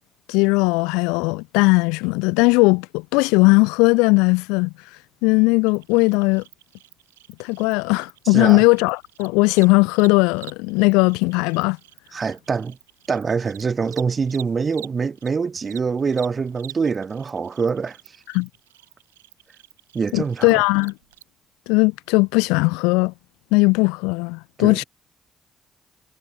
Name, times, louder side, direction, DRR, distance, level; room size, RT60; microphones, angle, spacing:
voice 1, 0.3-4.7 5.2-6.4 7.4-11.8 18.3-18.5 20.1-20.9 21.7-23.1 23.5-24.8, left 28 dB, 80° left, 0.7 m, -18 dB
Cricket, 5.7-15.3 15.6-21.2, right 15 dB, 90° right, 4.8 m, -46 dB
voice 2, 8.2-8.6 12.1-12.8 13.1-18.2 19.9-20.6 24.6-24.8, right 5 dB, 45° right, 2.6 m, -24 dB
hypercardioid pair, 45°, 0 cm